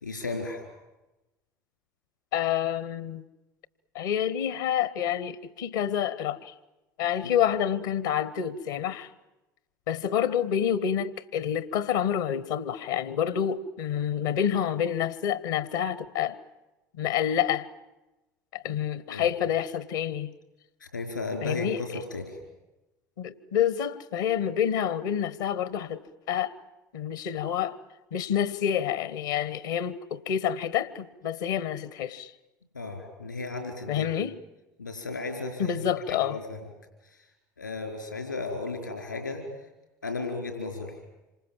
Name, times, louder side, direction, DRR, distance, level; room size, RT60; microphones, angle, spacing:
voice 1, 0.0-0.6 7.2-7.3 19.1-19.3 20.8-22.4 32.7-34.1 34.8-36.6 37.6-39.5 40.0-41.0, left 3 dB, 85° left, 4.8 m, -34 dB
voice 2, 2.3-3.2 3.9-6.5 7.0-9.1 9.9-16.4 17.0-17.7 18.5-20.3 21.4-22.0 23.2-26.0 26.3-26.5 26.9-27.8 28.1-32.3 33.9-34.3 35.6-36.4, left 9 dB, 70° left, 1.3 m, -28 dB
27.5 x 26.0 x 7.5 m
figure-of-eight pair, 65°, 10 cm